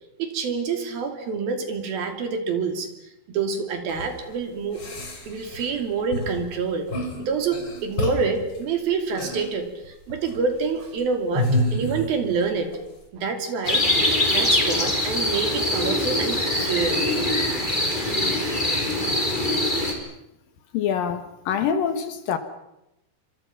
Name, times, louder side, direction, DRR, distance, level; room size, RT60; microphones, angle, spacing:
voice 1, 0.2-2.9 3.3-4.8 5.3-6.9 7.2-12.7 13.1-13.9 14.3-17.1, right 5 dB, 60° right, 6 dB, 4.5 m, -27 dB
sound 1, 3.9-4.1 4.7-5.8 6.1-6.4 6.9-7.2 7.5-8.5 9.2-9.5 10.1-10.5 11.3-12.4 12.7-12.8, left 1 dB, 30° left, 4.4 m, -28 dB
sound 2, 13.6-19.9, left 1 dB, 10° left, 4.4 m, -23 dB
voice 2, 20.7-22.4, left 8 dB, 65° left, 9 dB, 2.8 m, -25 dB
29.0 x 26.0 x 5.9 m, 0.88 s
omnidirectional pair, 4.8 m